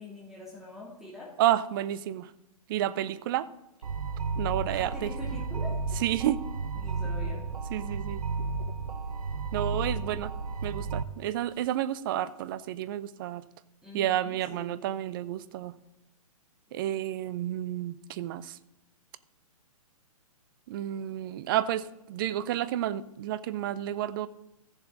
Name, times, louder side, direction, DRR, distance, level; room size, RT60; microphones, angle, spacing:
voice 1, 0.0-1.3 4.7-5.7 6.7-7.5 13.8-14.8, left 2 dB, ahead, -5 dB, 2.8 m, -44 dB
voice 2, 1.4-2.3 2.7-3.5 4.4-5.1 6.0-6.4 7.7-8.2 9.5-10.3 10.6-13.4 13.9-15.8 16.7-18.6 20.7-24.3, right 12 dB, 35° right, 16 dB, 0.5 m, -30 dB
sound 1, 3.8-11.0, right 4 dB, 80° right, 0.8 m, -33 dB
14.5 x 7.2 x 3.9 m, 0.92 s
figure-of-eight pair, 125°, 19 cm